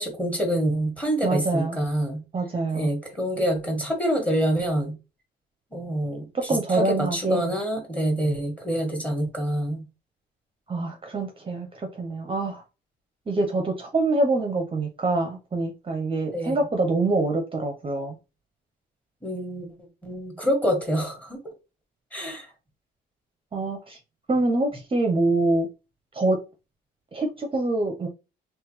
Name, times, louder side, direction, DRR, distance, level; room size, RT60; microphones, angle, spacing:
voice 1, 0.0-2.2 2.7-4.9 5.7-9.9 16.3-16.6 19.2-19.7 20.0-21.5 22.1-22.5, equal, 5° left, 1.7 m, -26 dB
voice 2, 1.2-1.8 2.3-2.9 6.3-7.4 10.7-12.6 13.3-18.1 23.5-24.0 24.3-25.7 26.1-26.4 27.1-28.1, right 2 dB, 25° right, 0.8 m, -25 dB
3.4 x 3.1 x 3.2 m
cardioid pair, 90°, 20 cm